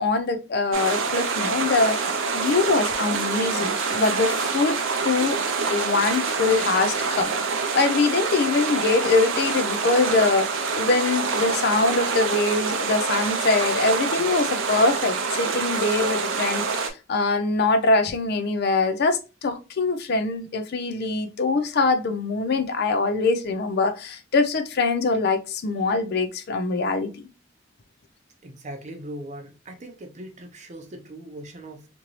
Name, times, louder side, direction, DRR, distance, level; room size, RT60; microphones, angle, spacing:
voice 1, 0.0-4.8 5.0-5.4 5.7-27.3, left 3 dB, 55° left, 0.4 m, -23 dB
sound 1, 0.7-16.9, right 4 dB, 80° right, 0.5 m, -26 dB
voice 2, 28.4-31.9, right 1 dB, 40° right, 0.6 m, -39 dB
2.9 x 2.6 x 3.0 m
head